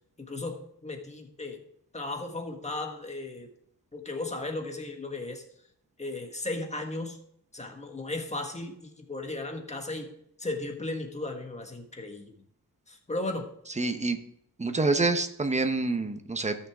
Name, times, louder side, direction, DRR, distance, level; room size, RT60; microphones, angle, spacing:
voice 1, 0.3-1.6 1.9-3.5 3.9-5.4 6.0-7.2 7.5-10.1 10.4-12.3 12.9-13.5, left 2 dB, 20° left, 3 dB, 1.5 m, -35 dB
voice 2, 13.8-14.2 14.6-16.6, right 3 dB, 20° right, 7 dB, 1.0 m, -27 dB
14.5 x 6.5 x 3.6 m, 0.70 s
wide cardioid pair, 135°, 35 cm